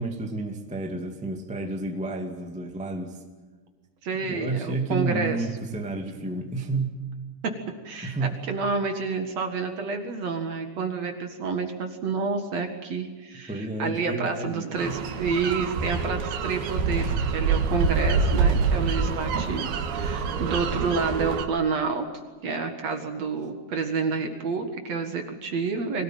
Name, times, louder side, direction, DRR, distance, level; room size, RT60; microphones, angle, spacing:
voice 1, 0.0-3.2 4.2-7.0 8.0-8.4 13.5-15.1, right 2 dB, 5° right, 3 dB, 1.1 m, -31 dB
voice 2, 4.0-5.4 7.4-7.5 7.8-8.2 8.5-22.1 22.4-26.0, right 4 dB, 50° right, 6 dB, 2.5 m, -29 dB
sound 1, 14.8-21.5, right 5 dB, 80° right, 3.5 m, -26 dB
24.5 x 17.5 x 9.2 m, 1.4 s
omnidirectional pair, 4.5 m